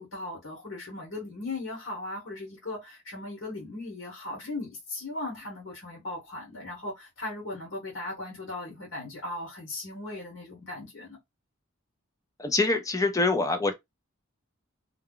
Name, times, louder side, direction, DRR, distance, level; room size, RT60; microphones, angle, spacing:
voice 1, 0.0-11.2, left 2 dB, 65° left, 1.1 m, -38 dB
voice 2, 12.4-13.7, left 3 dB, 15° left, 0.5 m, -25 dB
2.3 x 2.2 x 3.7 m
head